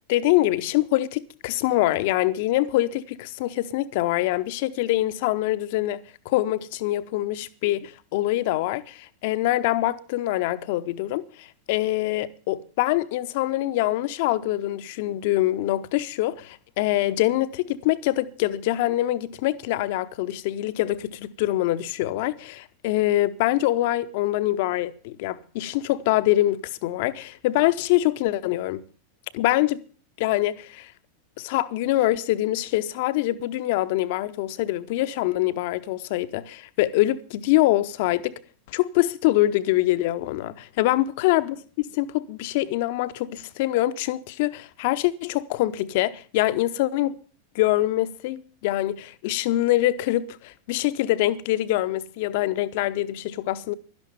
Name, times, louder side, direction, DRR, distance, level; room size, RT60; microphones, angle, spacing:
voice 1, 0.1-28.8 29.3-29.8 30.2-30.9 31.4-38.3 38.7-47.1 47.5-53.7, left 15 dB, 50° left, 0.8 m, -24 dB
12.0 x 11.5 x 7.3 m
figure-of-eight pair, 90°, 0 cm